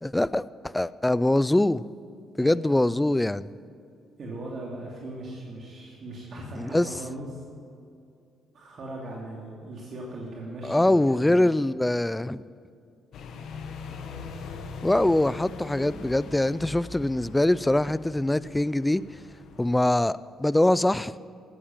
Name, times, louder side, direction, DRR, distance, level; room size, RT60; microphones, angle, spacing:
voice 1, 0.0-1.8 2.4-3.5 6.6-6.9 10.6-12.4 14.8-19.0 19.6-21.1, left 1 dB, 10° left, 0.4 m, -23 dB
voice 2, 2.3-3.0 4.2-7.4 8.5-11.5, right 1 dB, 55° right, 2.7 m, -39 dB
sound 1, 13.1-19.8, left 4 dB, 70° left, 1.3 m, -41 dB
13.0 x 9.9 x 7.4 m
supercardioid pair, 75°, 0 cm